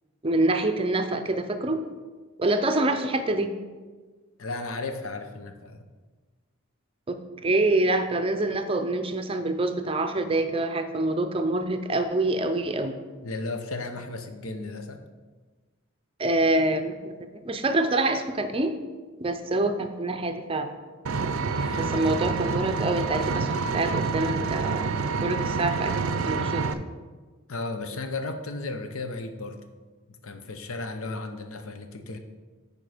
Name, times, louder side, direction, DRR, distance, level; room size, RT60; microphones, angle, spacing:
voice 1, 0.2-1.8 2.4-3.5 7.1-7.2 7.4-12.9 16.2-17.1 17.4-18.7 19.2-20.7 21.7-24.9 25.2-25.9 26.3-26.6, right 2 dB, 25° right, 7 dB, 0.5 m, -26 dB
voice 2, 4.4-5.9 13.2-15.0 21.6-22.1 27.5-29.6 30.2-32.2, left 3 dB, 80° left, 6 dB, 0.8 m, -34 dB
Vehicle, 21.1-26.7, right 4 dB, 75° right, 0.5 m, -27 dB
9.0 x 5.1 x 5.0 m, 1.4 s
head